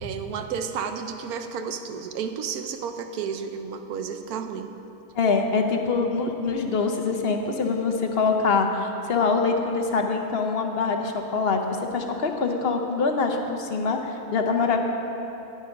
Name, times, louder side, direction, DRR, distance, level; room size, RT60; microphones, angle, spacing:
voice 1, 0.0-4.7, right 6 dB, 90° right, 7 dB, 1.2 m, -32 dB
voice 2, 5.1-14.8, left 4 dB, 50° left, 4 dB, 0.9 m, -24 dB
10.5 x 10.5 x 5.3 m, 3.0 s
omnidirectional pair, 1.5 m